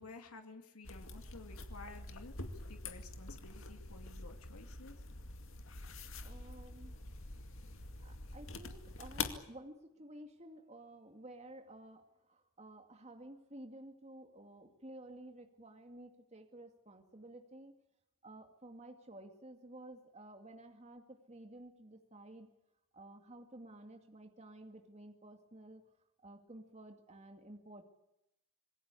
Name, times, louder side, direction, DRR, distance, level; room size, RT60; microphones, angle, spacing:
voice 1, 0.0-2.4 2.7-5.0, left 3 dB, 85° left, 5 dB, 2.4 m, -53 dB
sound 1, 0.8-9.4, left 3 dB, 60° left, 2.3 m, -45 dB
voice 2, 6.2-7.0 8.0-17.8 18.2-22.5 22.9-25.8 26.2-27.8, right 1 dB, 30° right, 4 dB, 2.3 m, -53 dB
26.5 x 21.0 x 8.4 m, 0.83 s
head